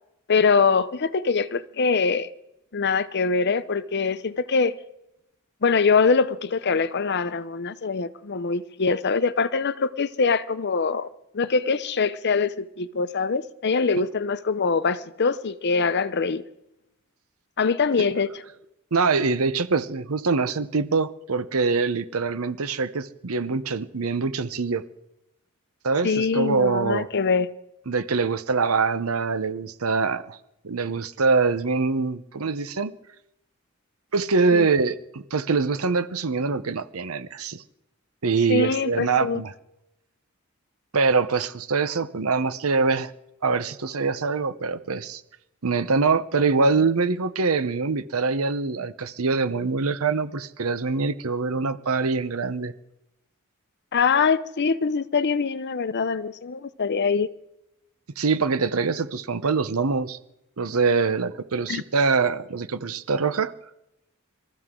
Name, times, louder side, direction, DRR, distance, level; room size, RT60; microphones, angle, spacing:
voice 1, 0.3-2.3 2.7-4.8 5.6-11.1 11.3-16.4 17.6-18.4 26.0-27.5 34.5-34.7 38.5-39.4 53.9-57.3 61.7-61.8, left 5 dB, 50° left, 0.7 m, -23 dB
voice 2, 18.9-24.8 25.8-27.1 27.9-30.4 30.6-32.9 34.1-37.6 38.2-39.5 40.9-43.1 43.4-45.2 45.6-52.7 58.2-60.2 60.6-63.5, right 4 dB, 85° right, 0.9 m, -24 dB
25.5 x 14.0 x 3.8 m
head